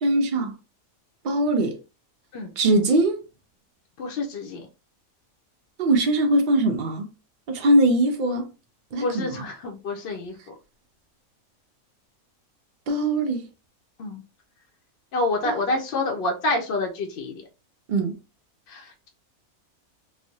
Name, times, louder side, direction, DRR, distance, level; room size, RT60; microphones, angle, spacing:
voice 1, 0.0-0.5 1.2-1.8 2.6-3.2 5.8-7.1 7.5-8.5 8.9-9.5 12.9-13.5 15.4-15.6 17.9-18.1, right 1 dB, 90° right, 0.4 m, -21 dB
voice 2, 4.0-4.7 9.0-10.5 14.0-14.2 15.1-17.4 18.7-19.1, left 2 dB, 65° left, 0.6 m, -28 dB
3.1 x 2.0 x 2.6 m
omnidirectional pair, 1.5 m